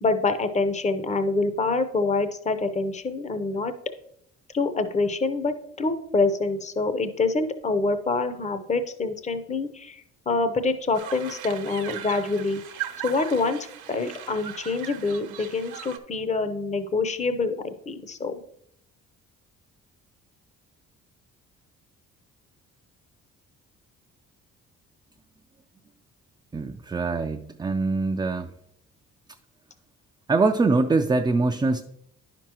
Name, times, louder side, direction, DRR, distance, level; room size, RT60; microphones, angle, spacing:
voice 1, 0.0-3.7 4.5-12.6 13.0-18.4, left 3 dB, 25° left, 10 dB, 0.7 m, -26 dB
sound 1, 10.9-16.0, right 10 dB, 80° right, 0.9 m, -38 dB
voice 2, 26.5-28.5 30.3-31.8, right 3 dB, 15° right, 5 dB, 0.3 m, -23 dB
10.0 x 6.0 x 2.9 m, 0.75 s
cardioid pair, 90°, 30 cm